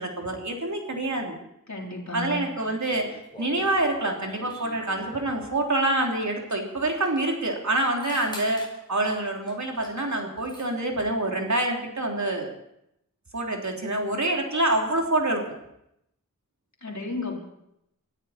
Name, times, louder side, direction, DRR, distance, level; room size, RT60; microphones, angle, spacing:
voice 1, 0.0-1.4 2.1-3.1 3.4-12.5 13.3-15.5, right 2 dB, 60° right, 1 dB, 3.3 m, -26 dB
voice 2, 1.7-2.5 16.8-17.4, left 2 dB, 55° left, 0 dB, 3.8 m, -33 dB
sound 1, 2.7-5.5 6.5-6.6 6.9-7.2 7.8-8.8 9.5-10.0 10.2-10.7, equal, 15° left, 6.3 m, -46 dB
23.0 x 14.5 x 4.3 m, 0.80 s
wide cardioid pair, 50°, 33 cm